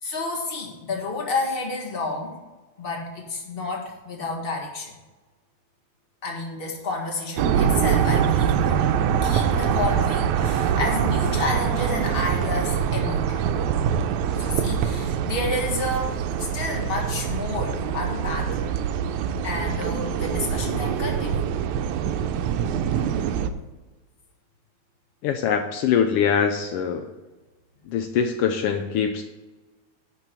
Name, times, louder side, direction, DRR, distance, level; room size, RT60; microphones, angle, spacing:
voice 1, 0.0-2.4 2.8-4.9 6.2-8.9 9.2-13.4 14.4-18.6 19.4-21.5, left 2 dB, 25° left, 0 dB, 1.5 m, -30 dB
sound 1, 7.4-23.5, right 8 dB, 85° right, 1.9 m, -24 dB
voice 2, 25.2-27.1 27.9-29.2, left 7 dB, 90° left, 6 dB, 1.3 m, -23 dB
11.0 x 4.6 x 6.8 m, 1.2 s
omnidirectional pair, 3.3 m